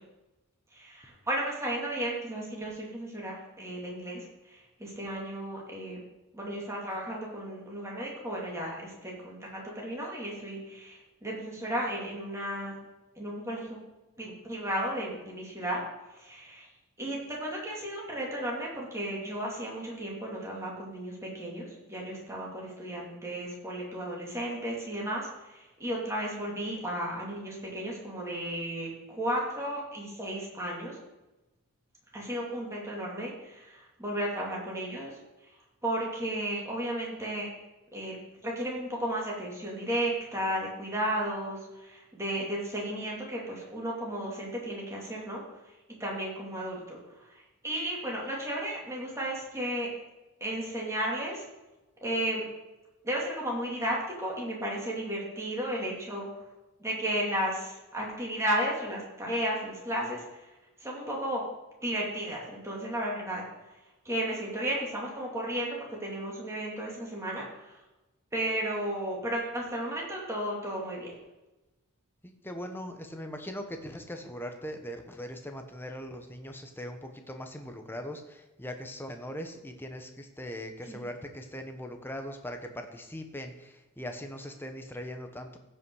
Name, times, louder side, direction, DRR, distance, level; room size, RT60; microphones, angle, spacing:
voice 1, 0.7-6.0 6.3-12.8 13.2-13.8 14.2-15.8 16.1-16.7 17.0-31.0 32.1-35.2 35.8-37.5 37.9-38.2 38.4-45.4 46.0-47.3 47.6-49.9 50.4-51.4 52.0-52.5 53.0-56.3 56.8-60.4 60.8-61.4 61.8-63.4 64.0-67.8 68.3-71.1 80.9-81.0, right 1 dB, 15° right, -3 dB, 2.6 m, -34 dB
voice 2, 72.2-85.6, equal, 10° left, 5 dB, 0.9 m, -40 dB
15.5 x 5.6 x 4.8 m, 1.1 s
head